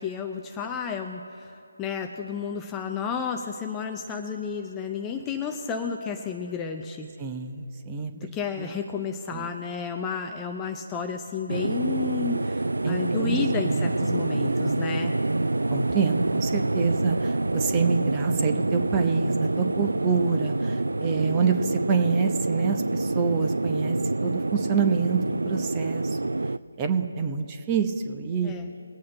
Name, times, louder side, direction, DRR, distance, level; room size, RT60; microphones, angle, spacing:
voice 1, 0.0-1.5 1.8-7.1 8.1-15.2 28.4-28.7, left 6 dB, 10° left, 4 dB, 0.6 m, -32 dB
voice 2, 7.2-8.3 8.6-8.7 9.3-9.5 12.8-13.4 13.6-13.9 15.7-24.0 24.2-25.2 25.4-26.2 26.8-28.5, right 6 dB, 20° right, 5 dB, 0.8 m, -27 dB
sound 1, 11.5-26.6, right 2 dB, 75° right, 0.4 m, -26 dB
22.5 x 8.6 x 3.8 m, 3.0 s
figure-of-eight pair, 155°, 0 cm